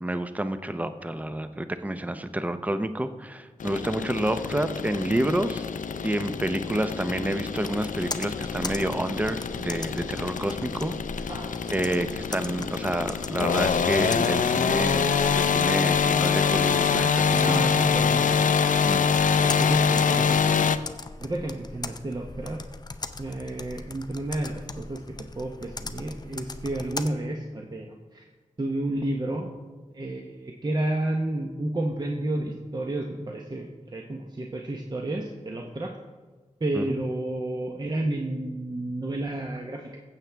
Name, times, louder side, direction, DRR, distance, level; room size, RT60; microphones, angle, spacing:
voice 1, 0.0-5.7 6.0-10.9 11.7-17.7 18.9-19.5 36.7-36.9, right 1 dB, 10° right, 10 dB, 0.6 m, -29 dB
sound 1, 3.6-20.8, left 6 dB, 85° left, 0.4 m, -25 dB
Computer keyboard, 7.5-27.1, left 3 dB, 30° left, 0.5 m, -40 dB
voice 2, 17.3-18.5 19.6-20.7 21.2-22.6 23.2-25.0 25.4-28.3 28.6-29.5 29.9-35.9 36.6-40.0, right 1 dB, 30° right, 1 dB, 0.9 m, -31 dB
15.0 x 7.4 x 3.4 m, 1.3 s
wide cardioid pair, 70°, 13 cm